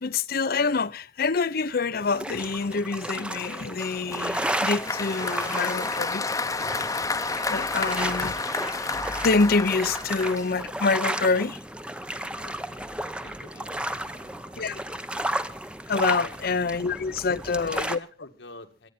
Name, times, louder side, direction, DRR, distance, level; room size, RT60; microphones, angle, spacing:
voice 1, 0.0-6.3 6.6-6.9 7.5-8.3 9.2-11.6 14.6-14.8 15.9-18.0, left 4 dB, 55° left, 0.7 m, -26 dB
sound 1, 1.2-1.3 1.6-1.7 2.0-2.2 2.5-2.7 4.0-17.8, right 1 dB, 30° right, 1.7 m, -53 dB
sound 2, 2.0-18.0, right 1 dB, 5° right, 0.7 m, -33 dB
Applause, 3.8-10.9, left 3 dB, 20° left, 0.9 m, -31 dB
voice 2, 7.8-8.2 12.2-14.9 16.1-16.4 17.2-18.9, left 3 dB, 85° left, 1.9 m, -48 dB
24.0 x 9.9 x 4.2 m
head